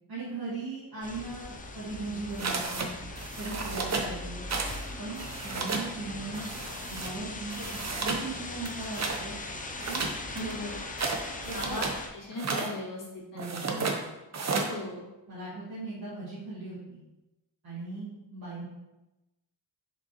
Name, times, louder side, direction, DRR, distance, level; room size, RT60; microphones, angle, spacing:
voice 1, 0.1-2.9 3.4-4.4 5.0-6.5 6.9-7.7 8.0-9.3 9.9-10.7 11.4-11.8 13.3-14.0 15.3-17.0 17.6-18.6, right 3 dB, 50° right, -11 dB, 2.1 m, -38 dB
sound 1, 1.0-12.1, left 2 dB, 20° left, 0.5 m, -40 dB
sound 2, 2.4-2.9 3.2-4.1 4.5-4.8 5.1-5.9 6.3-7.1 7.5-8.3 8.6-9.2 9.8-12.0 12.3-12.7 13.4-14.0 14.3-14.7, right 4 dB, 35° right, 0.7 m, -33 dB
voice 2, 10.3-10.8 11.5-13.8 14.5-15.1, left 2 dB, 45° left, -6 dB, 2.1 m, -39 dB
6.7 x 5.1 x 3.0 m, 0.98 s
wide cardioid pair, 155°, 46 cm